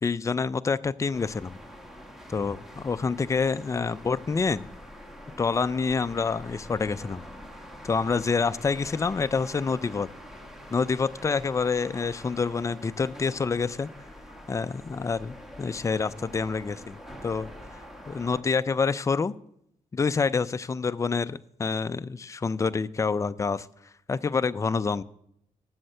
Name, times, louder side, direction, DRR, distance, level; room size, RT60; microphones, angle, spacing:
voice 1, 0.0-1.6 2.3-4.6 5.4-7.2 7.8-10.1 10.7-13.9 14.5-17.0 17.2-17.5 18.1-19.3 19.9-23.7 24.1-25.0, left 5 dB, 25° left, 14 dB, 0.4 m, -27 dB
sound 1, 1.1-18.4, equal, ahead, 1.3 m, -45 dB
7.8 x 6.4 x 7.8 m, 0.73 s
cardioid pair, 95°, 14 cm